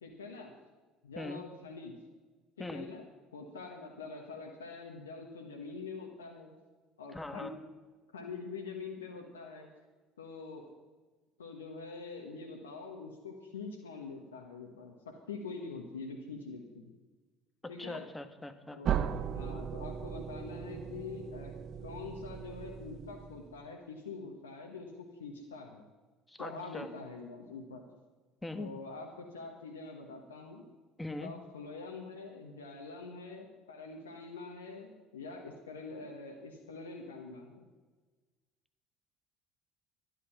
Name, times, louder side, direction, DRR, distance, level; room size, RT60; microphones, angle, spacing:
voice 1, 0.0-0.5 1.0-1.9 2.6-3.1 3.3-6.5 7.0-7.5 8.1-9.7 10.2-10.7 11.4-16.9 17.7-18.1 18.7-21.5 21.8-24.9 25.2-25.9 26.4-27.9 28.6-30.6 31.2-37.7, left 4 dB, 85° left, 1 dB, 1.2 m, -45 dB
voice 2, 7.1-7.5 17.6-18.8 26.3-26.9 28.4-28.7 31.0-31.4, left 2 dB, 10° left, 8 dB, 1.4 m, -41 dB
sound 1, 18.8-23.6, right 9 dB, 50° right, 0.8 m, -37 dB
11.5 x 11.0 x 5.9 m, 1.3 s
hypercardioid pair, 65°, 0 cm